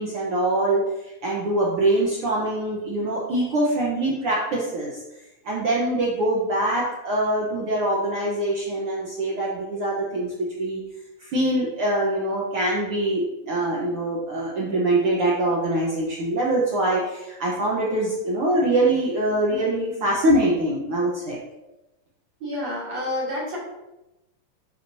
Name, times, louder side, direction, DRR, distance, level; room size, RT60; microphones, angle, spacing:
voice 1, 0.0-5.0 5.4-10.8 11.2-21.4, right 1 dB, 85° right, -5 dB, 1.2 m, -24 dB
voice 2, 22.4-23.6, left 1 dB, 50° right, -6 dB, 3.9 m, -29 dB
11.5 x 5.0 x 2.7 m, 0.96 s
omnidirectional pair, 4.1 m